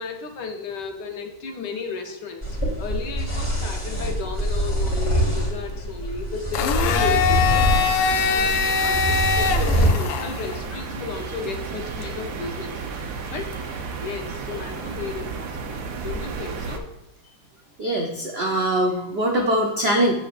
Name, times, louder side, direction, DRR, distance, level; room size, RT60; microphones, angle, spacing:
voice 1, 0.0-7.8 8.4-12.9 13.3-13.6 14.0-16.9, left 5 dB, 70° left, 4 dB, 1.4 m, -34 dB
sound 1, 2.4-9.9, right 1 dB, 15° left, 1.4 m, -24 dB
Domestic sounds home sounds, 6.5-10.6, left 6 dB, 90° left, 1.3 m, -22 dB
sound 2, 6.8-16.8, right 4 dB, 70° right, 1.2 m, -33 dB
voice 2, 17.8-20.1, right 1 dB, 85° right, 1 dB, 0.5 m, -22 dB
8.5 x 6.3 x 2.5 m, 0.85 s
omnidirectional pair, 2.0 m